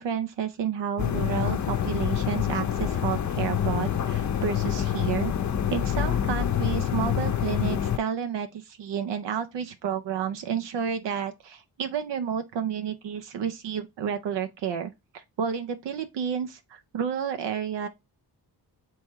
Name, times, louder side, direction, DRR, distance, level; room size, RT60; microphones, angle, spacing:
voice 1, 0.0-5.3 5.7-17.9, right 8 dB, 85° right, 0.6 m, -31 dB
sound 1, 1.0-8.0, left 9 dB, 45° left, 0.5 m, -26 dB
3.5 x 3.0 x 4.4 m
cardioid pair, 80°, 42 cm